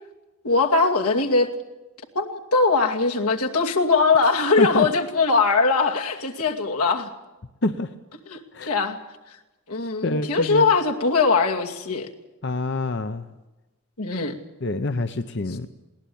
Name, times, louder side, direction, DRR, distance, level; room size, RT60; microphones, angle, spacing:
voice 1, 0.4-1.5 2.1-7.1 8.3-9.0 9.7-12.1 14.0-14.3, left 4 dB, 85° left, 2 dB, 2.5 m, -21 dB
voice 2, 10.0-10.7 12.4-13.3 14.6-15.7, left 2 dB, 50° left, 9 dB, 0.8 m, -26 dB
21.0 x 18.5 x 8.6 m, 1.0 s
head